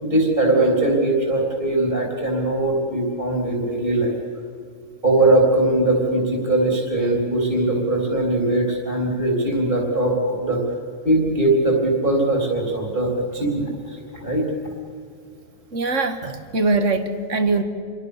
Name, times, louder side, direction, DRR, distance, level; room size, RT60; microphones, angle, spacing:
voice 1, 0.0-4.2 5.0-10.6 11.0-14.5, right 2 dB, 40° right, 0 dB, 3.7 m, -20 dB
voice 2, 15.7-17.6, right 3 dB, 65° right, 8 dB, 2.1 m, -22 dB
27.5 x 23.0 x 6.7 m, 2.3 s
omnidirectional pair, 1.4 m